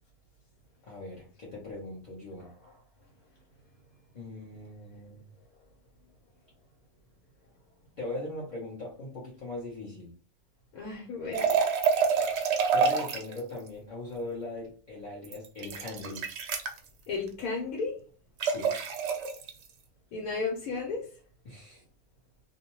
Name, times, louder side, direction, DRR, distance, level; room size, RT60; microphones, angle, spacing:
voice 1, 0.8-2.5 4.1-5.3 8.0-10.1 12.7-16.2 18.4-18.7 21.4-21.8, left 2 dB, 50° left, -4 dB, 0.6 m, -40 dB
voice 2, 10.7-11.6 17.1-18.0 20.1-21.1, left 4 dB, 80° left, -1 dB, 1.2 m, -34 dB
sound 1, 11.3-13.4 15.2-16.8 18.4-19.5, right 6 dB, 65° right, 0.7 m, -27 dB
2.6 x 2.1 x 2.9 m, 0.39 s
omnidirectional pair, 1.5 m